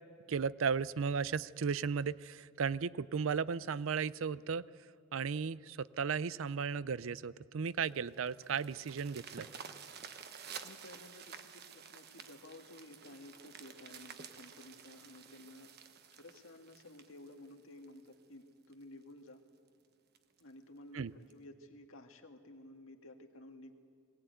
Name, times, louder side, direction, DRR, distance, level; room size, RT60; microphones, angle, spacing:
voice 1, 0.3-4.6 5.1-9.5 20.9-21.1, right 6 dB, 75° right, 19 dB, 0.5 m, -35 dB
sound 1, 7.7-18.1 18.7-18.8 19.3-19.4 19.7-19.8 20.2-20.4 21.3-21.4, right 6 dB, 50° right, 1.1 m, -51 dB
voice 2, 10.6-15.7 16.1-19.4 20.4-23.7, left 1 dB, 85° left, 4 dB, 1.9 m, -54 dB
20.5 x 18.0 x 9.2 m, 2.3 s
head